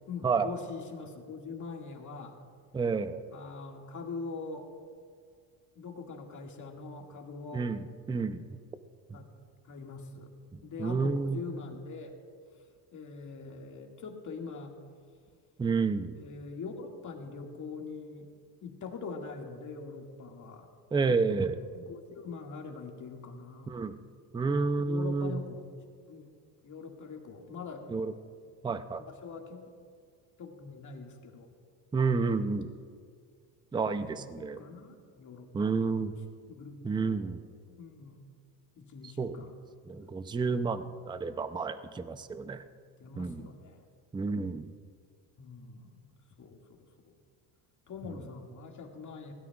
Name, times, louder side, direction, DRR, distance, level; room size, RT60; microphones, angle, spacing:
voice 1, 0.1-2.4 3.3-4.7 5.8-7.7 9.1-9.3 9.6-10.3 10.6-12.2 12.5-12.7 12.9-14.8 16.1-18.3 18.6-20.7 21.1-23.8 24.4-25.6 26.1-26.3 26.6-28.0 28.7-28.8 29.1-29.7 30.4-31.5 32.2-32.5 33.8-36.0 36.5-37.3 37.7-38.2 38.8-39.5 43.0-43.9 45.4-46.1 46.4-47.1 47.9-49.3, left 4 dB, 40° left, 1 dB, 2.0 m, -43 dB
voice 2, 2.7-3.2 7.5-8.4 9.1-9.2 10.5-11.4 15.6-16.2 20.9-21.6 23.7-24.0 24.3-25.4 27.9-28.1 28.6-29.0 31.9-32.7 33.7-34.6 35.5-36.2 36.8-37.4 39.2-39.4 39.9-42.6 43.2-43.5 44.1-44.7, right 4 dB, 10° right, 11 dB, 0.5 m, -30 dB
21.0 x 17.0 x 2.4 m, 2.1 s
cardioid pair, 110°, 44 cm